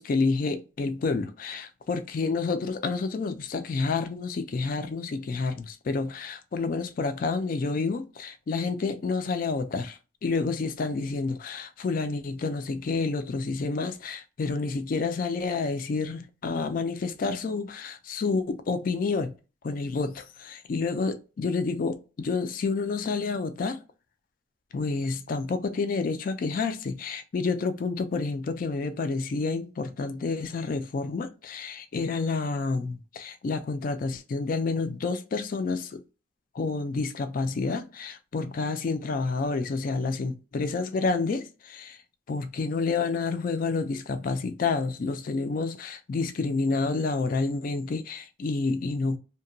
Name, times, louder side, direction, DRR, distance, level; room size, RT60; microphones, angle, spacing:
voice 1, 0.0-19.3 19.6-23.8 24.7-36.0 36.5-42.0 42.3-49.2, left 4 dB, 45° left, 0.3 m, -29 dB
2.8 x 2.1 x 2.5 m
head